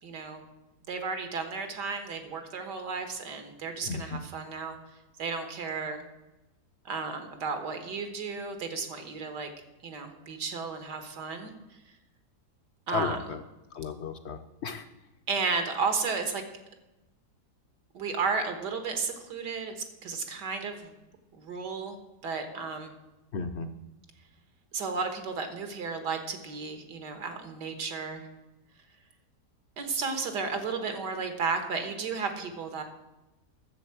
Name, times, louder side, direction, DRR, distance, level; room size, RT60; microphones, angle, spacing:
voice 1, 0.0-0.5 0.9-4.8 5.2-6.0 6.9-9.5 9.8-11.5 12.9-13.3 15.3-16.4 17.9-20.9 21.3-22.0 22.2-22.9 24.7-28.3 29.8-32.8, right 4 dB, 85° right, 7 dB, 2.0 m, -33 dB
voice 2, 3.9-4.2 12.9-13.4 13.7-14.8 23.3-23.7, left 5 dB, 60° left, 8 dB, 0.7 m, -34 dB
10.0 x 7.6 x 7.1 m, 0.99 s
omnidirectional pair, 1.8 m